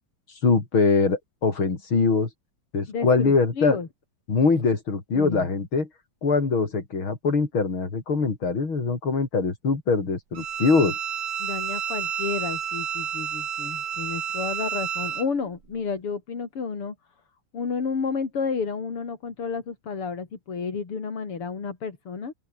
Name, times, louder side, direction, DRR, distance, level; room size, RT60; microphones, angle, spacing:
voice 1, 0.4-2.3 2.7-3.8 4.3-5.9 6.2-11.0, left 4 dB, 65° left, 4.8 m, -23 dB
voice 2, 2.9-3.9 5.1-5.5 11.4-16.9 17.5-22.3, left 5 dB, 90° left, 4.2 m, -31 dB
Bowed string instrument, 10.3-15.3, right 8 dB, 65° right, 2.3 m, -30 dB
open air
omnidirectional pair, 2.4 m